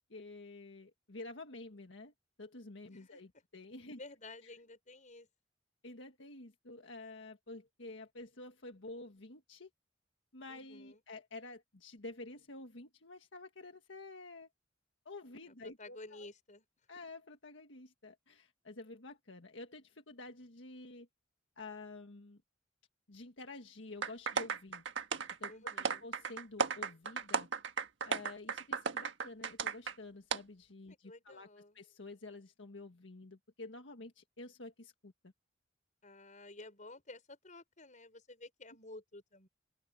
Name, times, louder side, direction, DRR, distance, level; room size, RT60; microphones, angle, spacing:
voice 1, 0.0-2.1 2.4-4.0 5.8-9.7 10.3-14.5 15.0-16.3 16.9-21.1 21.6-22.4 23.1-24.8 25.4-27.5 28.0-31.5 31.7-35.3, left 2 dB, 85° left, 1.6 m, -50 dB
voice 2, 2.9-3.2 3.9-5.3 10.5-11.0 15.5-16.6 25.5-26.0 30.9-31.8 36.0-39.5, left 2 dB, 45° left, 6.2 m, -53 dB
sound 1, 24.0-30.0 30.3-30.4, right 5 dB, 80° right, 1.6 m, -35 dB
head